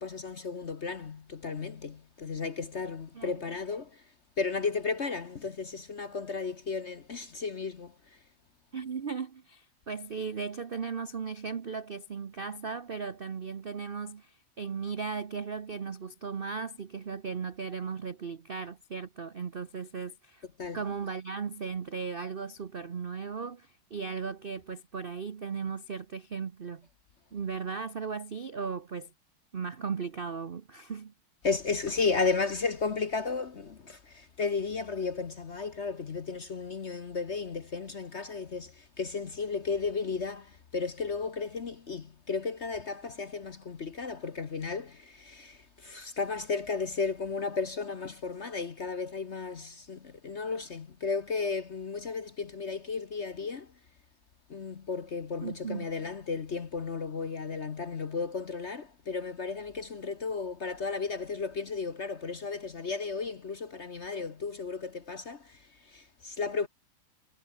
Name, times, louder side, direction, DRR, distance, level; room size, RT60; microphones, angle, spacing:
voice 1, 0.0-4.0 4.4-7.9 20.6-20.8 31.4-53.7 54.5-66.7, left 4 dB, 45° left, 1.0 m, -34 dB
voice 2, 8.7-20.4 20.7-26.9 27.3-29.1 29.5-31.1 55.4-55.9, right 5 dB, 60° right, 0.5 m, -37 dB
omnidirectional pair, 2.3 m